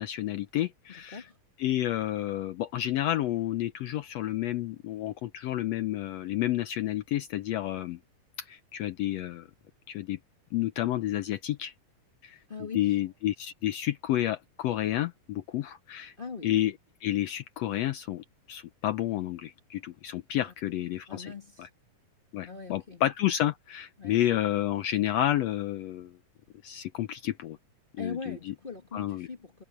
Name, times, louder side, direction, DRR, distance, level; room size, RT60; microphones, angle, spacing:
voice 1, 0.0-1.2 1.6-8.0 8.5-9.5 9.9-10.2 10.5-11.7 12.2-12.4 12.7-16.1 16.4-16.7 17.0-21.3 21.6-21.7 22.3-26.1 26.6-27.6 28.0-28.4 28.9-29.3, left 13 dB, 75° left, 1.6 m, -30 dB
voice 2, 0.9-1.4 12.5-13.0 16.2-16.6 20.4-20.5 21.1-21.7 22.4-23.0 24.0-24.2 28.0-29.6, left 5 dB, 30° left, 1.1 m, -41 dB
omnidirectional pair, 3.6 m